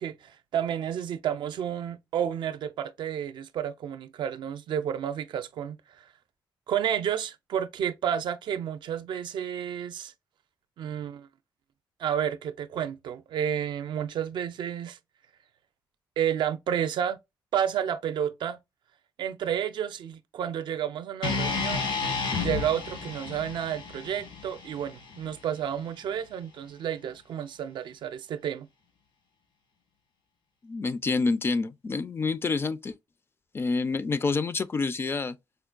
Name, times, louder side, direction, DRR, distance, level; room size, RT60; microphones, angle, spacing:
voice 1, 0.0-6.0 6.7-10.1 10.8-11.3 12.0-15.0 16.2-17.2 17.5-18.6 19.2-21.9 22.4-28.7, right 9 dB, 70° right, 0.4 m, -31 dB
sound 1, 21.2-25.4, left 4 dB, 80° left, 1.2 m, -32 dB
voice 2, 30.6-32.9 33.5-35.4, left 4 dB, 30° left, 0.3 m, -28 dB
4.3 x 2.2 x 2.4 m
cardioid pair, 110°, 8 cm